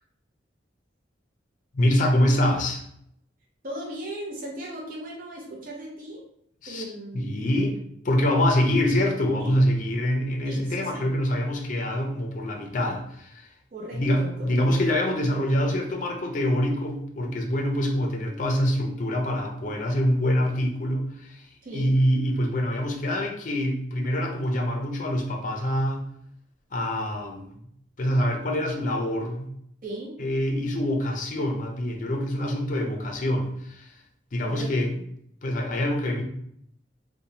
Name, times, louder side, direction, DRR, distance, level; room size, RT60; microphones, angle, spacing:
voice 1, 1.7-2.9 6.6-6.8 7.1-7.8 8.0-13.5 13.9-26.1 26.7-27.6 28.0-29.5 30.2-34.0 34.3-34.9 35.4-36.2, equal, 45° left, 1 dB, 0.5 m, -25 dB
voice 2, 3.6-6.2 6.7-7.4 9.4-9.6 10.4-11.1 13.7-14.8 21.6-22.0 29.8-30.2 34.4-35.0, right 1 dB, 45° right, -3 dB, 0.5 m, -37 dB
3.0 x 2.1 x 2.6 m, 0.71 s
head